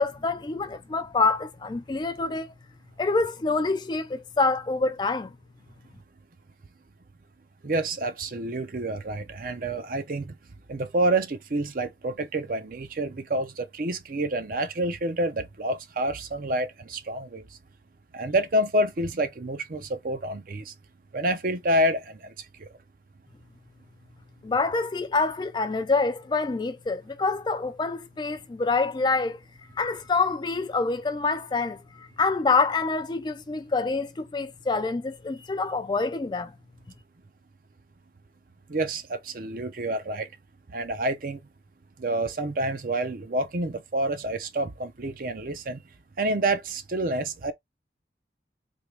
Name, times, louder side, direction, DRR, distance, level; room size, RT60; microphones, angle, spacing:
voice 1, 0.0-2.5 3.0-5.3 24.4-29.4 29.8-36.5, left 3 dB, 25° left, 0.3 m, -26 dB
voice 2, 7.6-10.3 10.7-17.4 18.1-20.7 21.1-22.3 22.6-22.7 38.7-40.3 40.7-41.4 42.0-45.8 46.2-47.5, right 1 dB, 50° right, 0.6 m, -28 dB
3.6 x 2.9 x 3.2 m
head